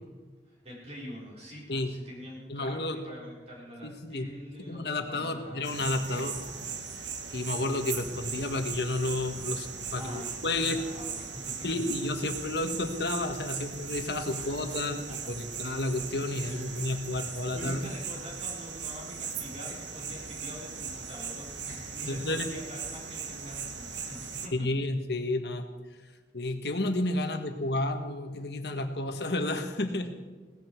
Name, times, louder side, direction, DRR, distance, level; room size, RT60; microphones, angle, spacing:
voice 1, 0.5-6.3 9.9-11.7 14.3-14.8 15.1-15.2 16.4-24.7, equal, 35° right, -4 dB, 4.2 m, -45 dB
voice 2, 2.5-3.0 3.8-4.3 4.6-6.3 7.3-10.8 11.6-17.9 22.1-22.4 24.5-25.7 26.3-30.1, left 2 dB, 65° left, 6 dB, 1.5 m, -31 dB
sound 1, 5.6-24.5, right 6 dB, 85° right, 1.3 m, -38 dB
18.0 x 14.5 x 4.6 m, 1.4 s
head